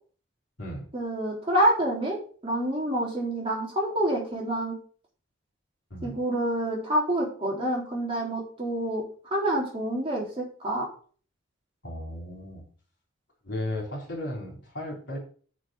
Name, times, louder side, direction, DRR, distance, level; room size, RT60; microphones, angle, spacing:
voice 1, 0.9-4.8 6.0-9.0 9.3-10.9, right 1 dB, 30° right, -3 dB, 3.6 m, -27 dB
voice 2, 11.8-12.6 13.4-15.2, left 1 dB, 60° left, -1 dB, 4.0 m, -35 dB
6.7 x 6.3 x 6.5 m, 0.41 s
head